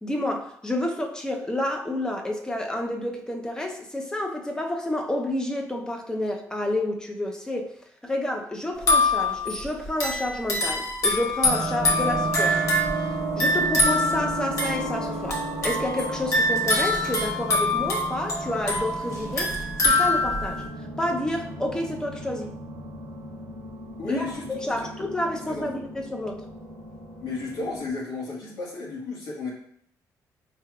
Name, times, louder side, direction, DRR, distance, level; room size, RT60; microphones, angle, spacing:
voice 1, 0.0-7.7 8.0-20.6 21.0-22.5 24.1-26.4, left 1 dB, 10° left, 3 dB, 0.6 m, -29 dB
sound 1, 8.7-20.7, left 2 dB, 50° left, 1.2 m, -25 dB
sound 2, 11.4-27.9, right 2 dB, 55° right, 0.9 m, -34 dB
voice 2, 24.0-24.8 25.5-25.7 27.2-29.5, left 3 dB, 75° left, -4 dB, 1.5 m, -33 dB
4.6 x 3.3 x 2.3 m, 0.65 s
cardioid pair, 120°, 7 cm